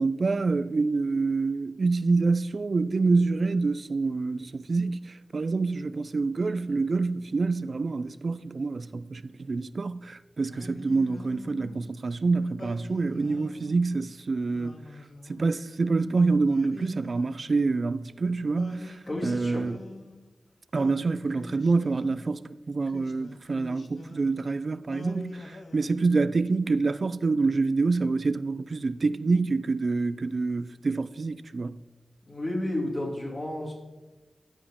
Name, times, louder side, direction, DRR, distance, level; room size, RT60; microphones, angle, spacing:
voice 1, 0.0-14.8 15.3-19.8 20.7-22.4 22.7-31.8, right 3 dB, 60° right, 0.3 m, -27 dB
Singing, 10.5-11.9 12.6-13.9 14.5-15.8 16.5-18.0 18.6-20.3 20.7-22.4 22.9-24.5 24.9-26.5, left 2 dB, 70° left, 0.8 m, -45 dB
voice 2, 19.1-19.6 32.3-33.7, left 1 dB, 45° left, 2.5 m, -31 dB
12.5 x 5.0 x 3.6 m
cardioid pair, 50°, 0 cm